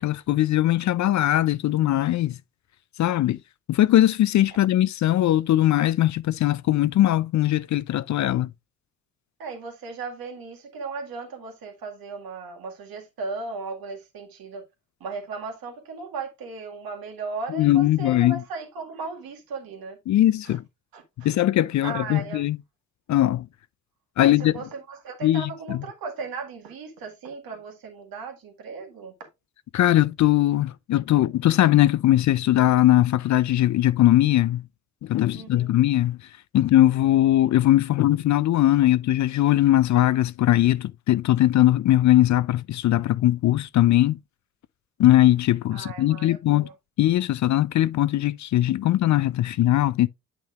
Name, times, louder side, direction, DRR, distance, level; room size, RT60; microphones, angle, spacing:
voice 1, 0.0-2.4 3.0-3.4 3.7-8.5 17.5-18.4 20.1-20.6 21.2-22.6 23.1-23.5 24.2-24.5 25.2-25.8 29.7-34.6 35.0-36.2 36.5-44.2 45.0-46.7 47.0-50.1, left 14 dB, 50° left, 0.4 m, -20 dB
voice 2, 9.4-14.6 15.0-20.0 20.4-20.6 20.9-21.3 21.8-22.4 24.2-29.1 35.3-35.7 45.7-46.7, right 4 dB, 70° right, 1.9 m, -36 dB
8.8 x 5.8 x 2.4 m
hypercardioid pair, 45°, 37 cm